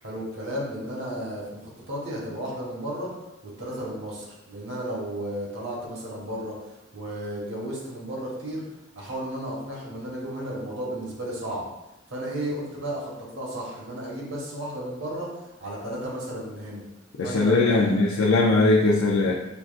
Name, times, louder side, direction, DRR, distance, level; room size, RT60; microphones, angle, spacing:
voice 1, 0.0-3.1 3.4-6.6 6.9-8.6 9.0-11.6 12.1-15.3 15.6-16.8 17.2-18.1, right 1 dB, 70° right, -4 dB, 1.3 m, -33 dB
voice 2, 17.2-19.3, left 3 dB, 80° left, -2 dB, 0.4 m, -20 dB
5.9 x 2.4 x 2.4 m, 0.97 s
head